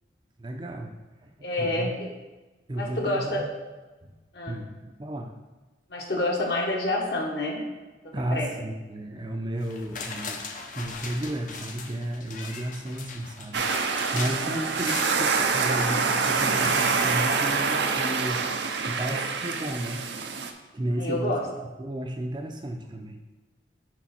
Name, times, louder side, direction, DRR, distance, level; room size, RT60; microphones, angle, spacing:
voice 1, 0.4-0.9 1.2-1.9 2.7-3.5 4.0-4.1 4.5-5.3 8.1-10.4 10.7-20.0 20.7-23.2, right 1 dB, 25° right, 3 dB, 0.5 m, -33 dB
voice 2, 1.4-2.1 2.8-3.4 4.3-4.6 5.9-7.6 8.3-8.5 14.2-14.7 21.0-21.4, left 1 dB, 65° left, -1 dB, 1.4 m, -28 dB
sound 1, 9.6-17.8 18.2-18.3, left 4 dB, 45° left, 0.6 m, -40 dB
sound 2, 13.5-20.5, right 5 dB, 75° right, 0.6 m, -26 dB
6.2 x 4.8 x 4.4 m, 1.2 s
head